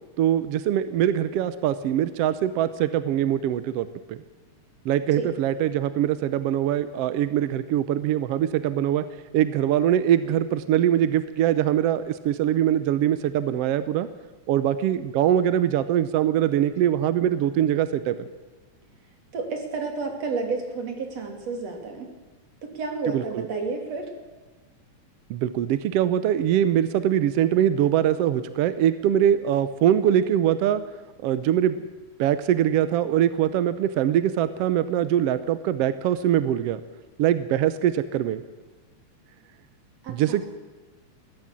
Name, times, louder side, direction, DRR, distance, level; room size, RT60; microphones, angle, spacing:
voice 1, 0.2-4.2 4.8-9.0 9.3-14.1 14.5-18.3 23.1-23.4 25.3-30.8 31.2-31.8 32.2-36.8 37.2-38.4 40.1-40.4, right 10 dB, 75° right, 13 dB, 1.5 m, -23 dB
voice 2, 19.3-22.1 22.6-24.1 40.0-40.4, right 4 dB, 55° right, 4 dB, 3.9 m, -31 dB
21.0 x 16.5 x 7.5 m, 1.3 s
omnidirectional pair, 3.5 m